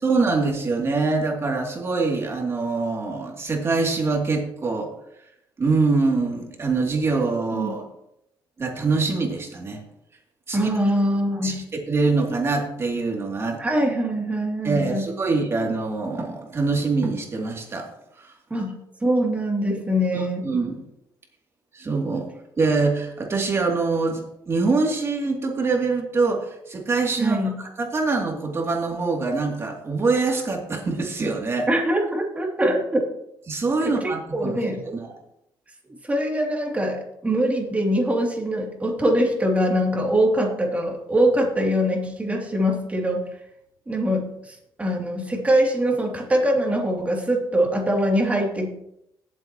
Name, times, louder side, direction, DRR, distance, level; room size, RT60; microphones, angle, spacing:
voice 1, 0.0-4.9 5.6-7.9 8.6-9.8 10.5-10.7 11.4-13.6 14.6-17.9 18.2-18.3 20.1-20.8 21.7-22.3 22.6-31.7 33.5-34.5 34.8-35.2, right 3 dB, 30° right, 0 dB, 2.7 m, -24 dB
voice 2, 10.5-11.6 13.6-15.1 18.5-18.7 19.0-20.5 27.2-27.5 31.7-33.0 33.8-34.8 36.0-43.2 43.9-48.7, equal, 15° right, 0 dB, 2.8 m, -23 dB
17.5 x 7.9 x 3.0 m, 0.80 s
cardioid pair, 105°, 8 cm